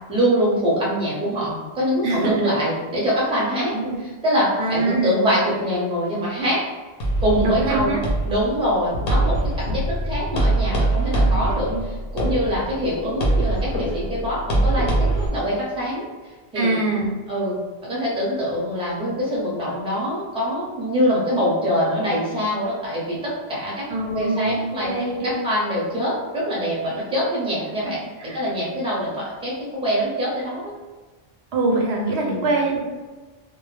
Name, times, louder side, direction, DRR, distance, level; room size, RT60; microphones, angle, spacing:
voice 1, 0.1-3.7 4.0-6.6 7.2-8.0 8.2-11.7 12.1-16.1 16.5-16.8 17.3-17.6 17.8-23.9 24.1-24.9 25.2-28.0 28.3-29.5 29.8-30.7 32.2-32.5, equal, 5° right, -6 dB, 0.6 m, -24 dB
voice 2, 2.0-2.5 3.7-4.0 4.6-5.2 7.4-8.0 11.0-11.8 16.5-17.1 23.9-25.4 28.2-28.4 31.5-32.8, right 2 dB, 85° right, 0 dB, 0.9 m, -24 dB
sound 1, 7.0-15.3, right 1 dB, 70° left, 0.8 m, -23 dB
2.3 x 2.0 x 3.1 m, 1.3 s
omnidirectional pair, 1.1 m